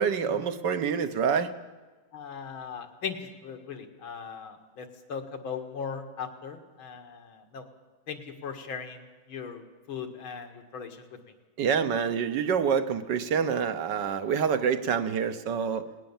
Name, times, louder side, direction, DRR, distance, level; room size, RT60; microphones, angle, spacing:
voice 1, 0.0-1.5 11.6-15.9, right 7 dB, 65° right, 10 dB, 1.6 m, -27 dB
voice 2, 2.1-7.6 8.1-9.0 9.3-11.0, left 6 dB, 85° left, 5 dB, 2.7 m, -39 dB
19.5 x 19.0 x 7.3 m, 1.3 s
omnidirectional pair, 2.2 m